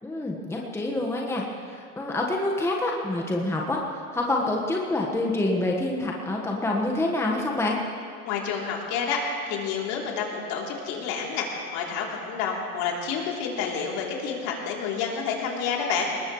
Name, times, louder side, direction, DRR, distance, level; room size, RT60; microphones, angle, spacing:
voice 1, 0.0-3.8 4.1-7.8, left 2 dB, 5° left, -1 dB, 1.5 m, -27 dB
voice 2, 8.2-9.2 9.5-16.1, left 6 dB, 50° left, -1 dB, 3.4 m, -29 dB
21.5 x 19.5 x 3.2 m, 2.3 s
hypercardioid pair, 105°, 44 cm